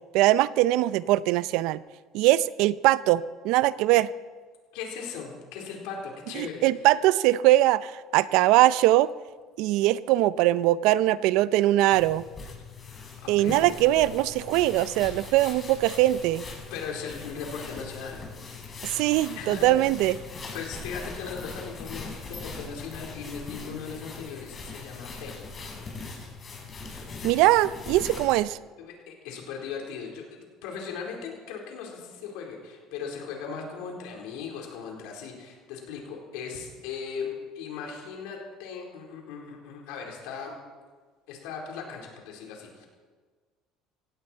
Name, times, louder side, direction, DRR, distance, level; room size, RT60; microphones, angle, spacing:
voice 1, 0.1-1.8 2.1-4.1 6.3-9.1 9.6-12.2 13.3-16.5 18.8-20.2 27.2-28.6, right 16 dB, 75° right, 17 dB, 0.5 m, -22 dB
voice 2, 4.7-6.6 13.2-13.7 16.7-18.2 19.4-19.8 20.5-25.5 28.8-37.3 37.5-40.6 41.3-42.9, left 6 dB, 80° left, 0 dB, 4.2 m, -38 dB
sound 1, 11.9-28.4, left 4 dB, 35° left, 5.7 m, -41 dB
17.0 x 16.5 x 4.5 m, 1.4 s
supercardioid pair, 95°, 0 cm